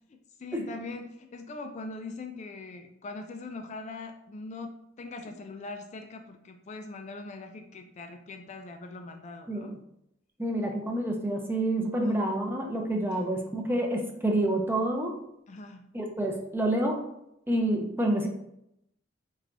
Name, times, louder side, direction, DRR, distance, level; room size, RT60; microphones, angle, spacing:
voice 1, 0.1-9.7 12.0-12.2 13.1-13.3 13.7-13.8 15.5-15.9, left 3 dB, 40° left, 5 dB, 0.3 m, -42 dB
voice 2, 10.4-15.2 15.9-17.0 17.5-18.3, right 1 dB, 10° right, 2 dB, 0.5 m, -28 dB
4.4 x 3.2 x 2.5 m, 0.79 s
head